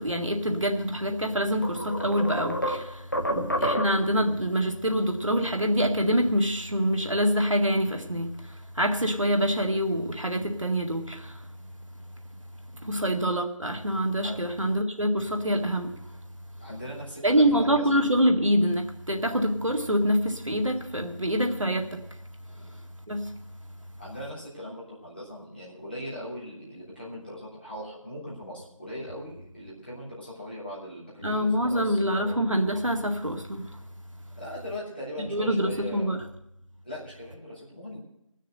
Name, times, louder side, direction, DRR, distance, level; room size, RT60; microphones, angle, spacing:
voice 1, 0.0-11.4 12.8-16.0 17.2-22.0 23.1-23.3 31.2-33.8 35.3-36.2, equal, 70° right, 1.9 m, -26 dB
sound 1, 1.0-1.2 1.6-4.2, equal, 40° left, 1.2 m, -29 dB
voice 2, 12.8-13.1 14.2-14.4 16.6-17.8 22.6-22.7 24.0-32.4 34.4-36.1 36.8-38.0, equal, 20° left, 3.3 m, -40 dB
19.0 x 6.6 x 7.8 m
figure-of-eight pair, 180°, 17 cm